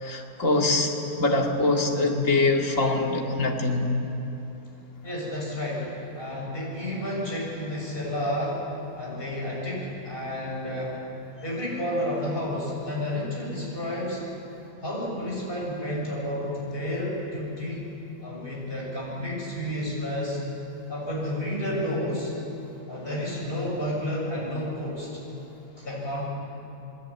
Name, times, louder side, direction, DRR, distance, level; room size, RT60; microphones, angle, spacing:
voice 1, 0.0-3.9, left 2 dB, 50° left, 1 dB, 2.5 m, -24 dB
voice 2, 5.0-5.9 6.1-8.6 8.9-11.0 11.4-14.2 14.8-17.9 18.2-20.4 20.9-22.3 22.9-25.1 25.8-26.3, left 1 dB, 35° left, -4 dB, 7.4 m, -31 dB
28.5 x 20.0 x 8.8 m, 3.0 s
omnidirectional pair, 1.7 m